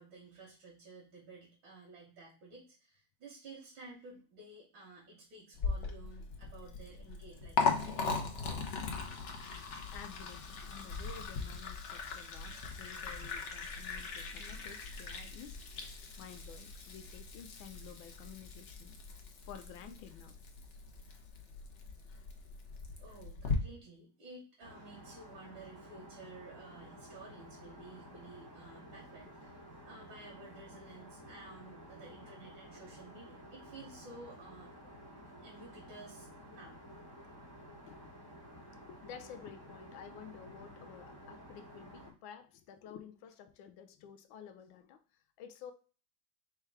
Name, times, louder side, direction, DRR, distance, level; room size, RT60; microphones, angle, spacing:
voice 1, 0.0-8.9 23.0-34.7 35.4-36.8, right 2 dB, 85° right, -4 dB, 2.0 m, -53 dB
Liquid, 5.5-23.5, left 4 dB, 60° left, 0.8 m, -39 dB
voice 2, 9.9-15.6 16.2-19.0 19.4-20.4 37.9-38.1 38.5-45.0 45.4-45.7, left 8 dB, 80° left, 8 dB, 1.4 m, -52 dB
Aircraft, 24.6-42.1, equal, 15° left, 1.0 m, -53 dB
4.5 x 2.3 x 4.6 m, 0.37 s
omnidirectional pair, 2.1 m